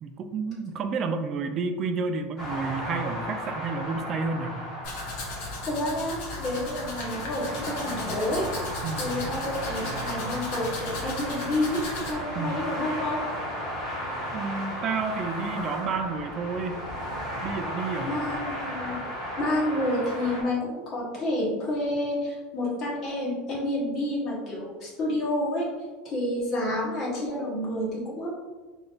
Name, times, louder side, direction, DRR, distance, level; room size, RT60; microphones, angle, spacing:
voice 1, 0.0-4.6 8.8-9.3 12.3-12.6 14.3-16.8 17.4-18.1, right 4 dB, 30° right, 6 dB, 0.3 m, -30 dB
sound 1, 2.4-20.4, equal, 5° right, 1.3 m, -34 dB
Domestic sounds home sounds, 4.8-12.1, left 2 dB, 60° left, 1.0 m, -37 dB
voice 2, 5.7-8.5 9.0-11.8 12.1-13.2 18.0-19.0 19.4-25.7 26.0-28.3, left 1 dB, 30° left, -4 dB, 1.1 m, -29 dB
4.4 x 3.1 x 2.4 m, 1.3 s
supercardioid pair, 165°, 0 cm